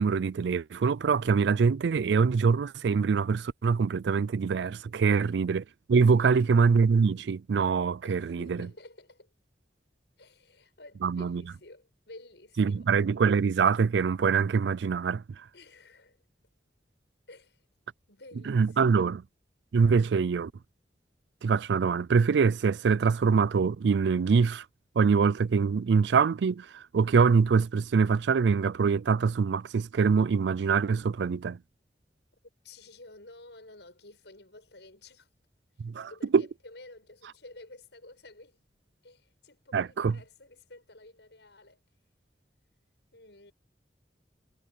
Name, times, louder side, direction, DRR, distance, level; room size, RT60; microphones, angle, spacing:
voice 1, 0.0-8.7 11.0-11.4 12.6-15.2 18.5-19.2 19.7-20.5 21.4-24.6 25.0-31.6 35.8-36.4 39.7-40.2, right 5 dB, 80° right, 0.4 m, -24 dB
voice 2, 4.9-5.2 6.1-6.3 8.0-9.3 10.2-12.9 15.5-16.2 17.3-17.6 18.1-19.1 32.6-35.3 36.0-38.6 39.0-41.8 43.1-43.5, left 2 dB, 80° left, 6.8 m, -52 dB
head